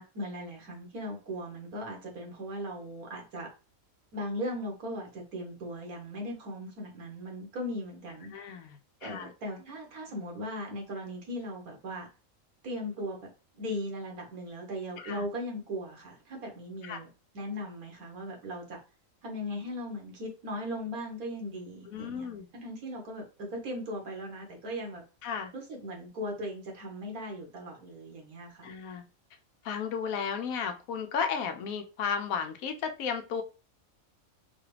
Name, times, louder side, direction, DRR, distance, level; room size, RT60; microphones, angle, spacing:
voice 1, 0.0-3.5 4.1-8.3 9.0-12.1 12.6-13.3 13.5-18.8 19.2-22.3 22.5-25.0 25.5-28.7, equal, 85° right, 0 dB, 1.7 m, -38 dB
voice 2, 8.3-9.3 15.0-15.2 16.8-17.0 21.9-22.5 25.2-25.5 28.6-29.0 29.6-33.4, left 6 dB, 80° left, 6 dB, 1.1 m, -34 dB
4.1 x 2.4 x 3.2 m, 0.33 s
omnidirectional pair, 1.5 m